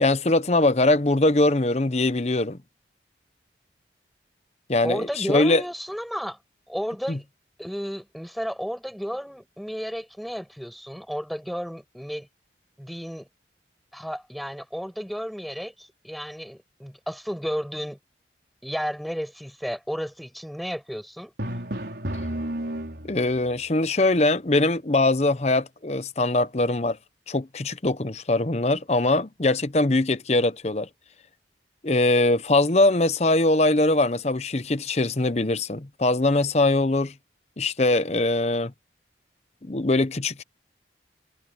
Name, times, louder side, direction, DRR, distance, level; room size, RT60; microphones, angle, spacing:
voice 1, 0.0-2.6 4.7-5.6 7.1-7.2 23.0-27.0 27.3-30.9 31.8-37.1 37.6-38.7 39.6-40.4, left 2 dB, 35° left, 0.8 m, -22 dB
voice 2, 4.8-6.4 6.7-7.2 7.6-12.3 12.8-13.3 13.9-18.0 18.6-21.3, equal, ahead, 6.7 m, -32 dB
Drum, 21.4-23.4, right 1 dB, 70° right, 4.7 m, -31 dB
head